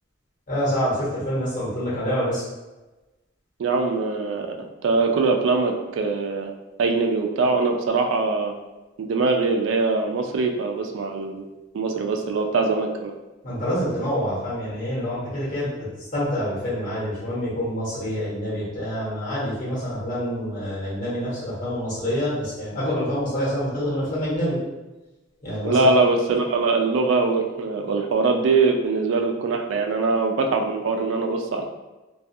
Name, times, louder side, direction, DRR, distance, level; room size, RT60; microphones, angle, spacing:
voice 1, 0.5-2.4 13.4-15.7 16.1-24.6 25.4-26.0, equal, 45° left, -8 dB, 1.1 m, -26 dB
voice 2, 3.6-4.5 4.8-6.5 6.8-8.5 9.0-11.4 11.7-13.1 25.6-31.7, right 3 dB, 80° right, 3 dB, 0.3 m, -22 dB
2.3 x 2.3 x 2.6 m, 1.1 s
head